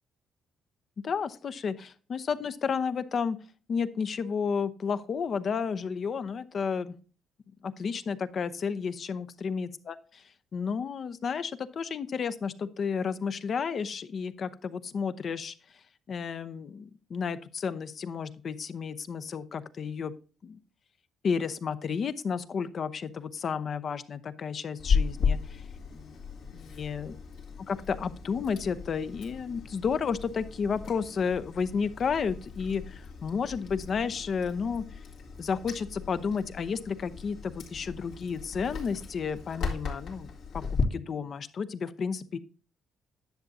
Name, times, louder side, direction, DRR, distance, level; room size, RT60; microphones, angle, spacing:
voice 1, 1.0-3.4 3.7-6.9 7.6-10.2 10.5-15.5 16.1-20.1 20.4-20.6 21.2-25.6 25.9-26.2 26.5-27.1 27.7-34.8 35.4-40.3 40.5-42.4, left 6 dB, 50° left, 13 dB, 0.7 m, -32 dB
Chewing mastication, 24.8-40.8, left 5 dB, 80° left, 2.2 m, -35 dB
10.5 x 6.9 x 2.7 m, 0.38 s
cardioid pair, 90°, 0 cm